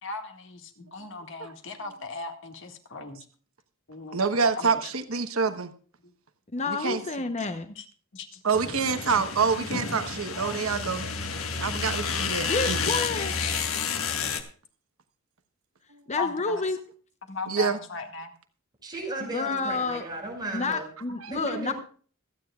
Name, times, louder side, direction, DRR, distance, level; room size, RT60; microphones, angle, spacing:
voice 1, 0.0-3.3 3.9-4.8 6.0-6.1 6.8-7.9 8.1-8.4 9.0-9.5 10.3-10.6 16.2-16.6 17.3-18.3, left 4 dB, 65° left, 5 dB, 1.9 m, -38 dB
voice 2, 4.1-5.7 6.7-7.0 8.4-11.1 11.6-12.8 15.9-16.0 17.5-17.8 21.2-21.3, right 5 dB, 85° right, 8 dB, 1.1 m, -27 dB
voice 3, 6.5-7.7 12.5-13.3 16.1-16.8 19.3-20.0 20.5-21.7, left 3 dB, 35° left, 8 dB, 0.9 m, -29 dB
sound 1, 8.5-14.4, left 5 dB, 80° left, 1.6 m, -30 dB
voice 4, 18.8-20.9 21.3-21.7, right 2 dB, 20° right, -1 dB, 6.3 m, -35 dB
25.5 x 9.5 x 2.4 m, 0.42 s
head